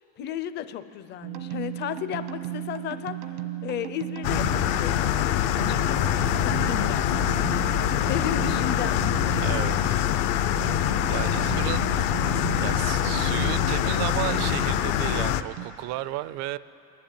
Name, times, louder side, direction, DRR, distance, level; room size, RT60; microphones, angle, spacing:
voice 1, 0.2-3.2 3.6-7.7 8.0-10.0, left 10 dB, 30° left, 12 dB, 0.6 m, -34 dB
sound 1, 1.2-15.7, right 12 dB, 90° right, 1.5 m, -36 dB
sound 2, 4.2-15.4, left 11 dB, 60° left, 0.8 m, -24 dB
voice 2, 9.4-10.0 11.1-11.9 12.6-16.6, right 16 dB, 50° right, 17 dB, 0.5 m, -33 dB
28.0 x 11.5 x 9.2 m, 2.9 s
cardioid pair, 175°, 36 cm